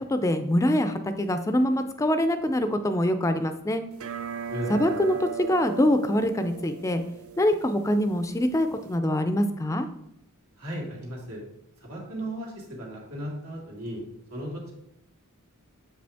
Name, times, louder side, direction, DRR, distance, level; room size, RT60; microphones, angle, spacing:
voice 1, 0.1-3.8 4.7-7.0 7.4-9.9, left 1 dB, 15° left, 9 dB, 0.4 m, -24 dB
sound 1, 3.9-9.0, right 6 dB, 65° right, 0.4 m, -38 dB
voice 2, 4.5-5.0 10.6-11.4 11.8-14.0 14.3-14.7, right 1 dB, 85° right, -3 dB, 2.3 m, -35 dB
7.5 x 5.1 x 3.5 m, 0.79 s
head